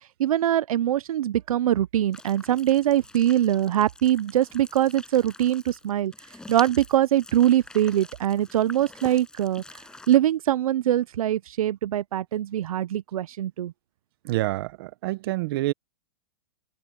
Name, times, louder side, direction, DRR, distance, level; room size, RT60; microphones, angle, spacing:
voice 1, 0.2-6.1 6.5-9.6 10.1-13.7, right 12 dB, 75° right, 0.6 m, -23 dB
sound 1, 2.1-10.2, left 2 dB, 5° left, 6.9 m, -46 dB
voice 2, 14.2-15.7, right 18 dB, 40° right, 0.9 m, -27 dB
hypercardioid pair, 160°, 18 cm